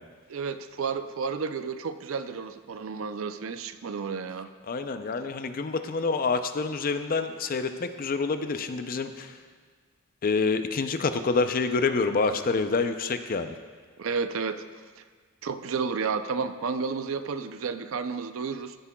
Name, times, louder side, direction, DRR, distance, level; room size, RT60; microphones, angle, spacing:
voice 1, 0.3-4.5 14.0-14.6 15.0-15.1 15.4-18.7, right 5 dB, 70° right, 11 dB, 0.5 m, -31 dB
voice 2, 4.7-9.3 10.2-13.5, left 4 dB, 45° left, 9 dB, 0.5 m, -27 dB
15.5 x 9.7 x 2.3 m, 1.5 s
head